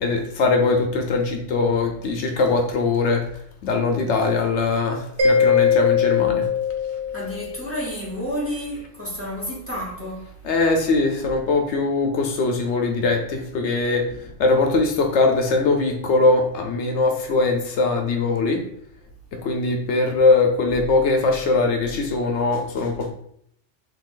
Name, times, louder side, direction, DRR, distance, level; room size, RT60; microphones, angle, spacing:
voice 1, 0.0-3.2 3.6-6.5 10.4-14.0 14.4-18.6 19.4-23.1, left 3 dB, 75° left, 0.9 m, -21 dB
Mallet percussion, 5.2-7.7, left 6 dB, 40° right, 0.4 m, -20 dB
voice 2, 7.1-10.3, equal, 10° right, 1.1 m, -30 dB
3.3 x 2.4 x 3.6 m
omnidirectional pair, 1.2 m